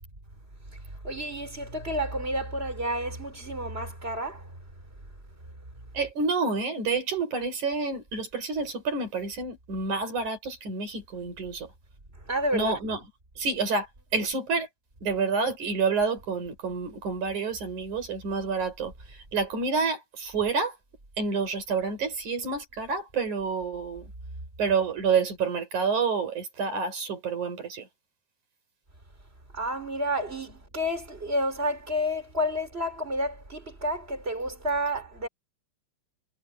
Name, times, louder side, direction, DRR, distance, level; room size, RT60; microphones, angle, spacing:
voice 1, 1.0-4.6 12.2-12.8 29.5-35.3, equal, 20° right, 4.7 m, -30 dB
voice 2, 5.9-11.7 12.5-13.0 13.4-13.9 14.1-14.7 15.0-20.7 21.2-24.1 24.6-27.9, right 4 dB, 80° right, 7.1 m, -28 dB
omnidirectional pair, 3.4 m